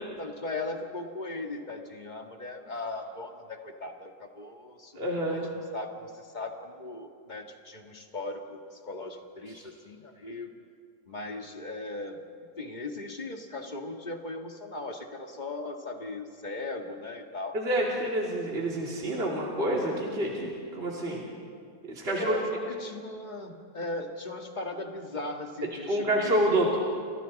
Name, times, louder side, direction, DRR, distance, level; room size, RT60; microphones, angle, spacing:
voice 1, 0.2-10.5 11.1-12.2 12.6-17.9 22.1-26.8, left 2 dB, 30° left, 3 dB, 1.9 m, -38 dB
voice 2, 5.0-5.5 17.5-21.3 21.8-22.3 25.9-26.8, right 1 dB, 40° right, -3 dB, 3.0 m, -28 dB
29.5 x 28.5 x 4.1 m, 2.3 s
omnidirectional pair, 1.7 m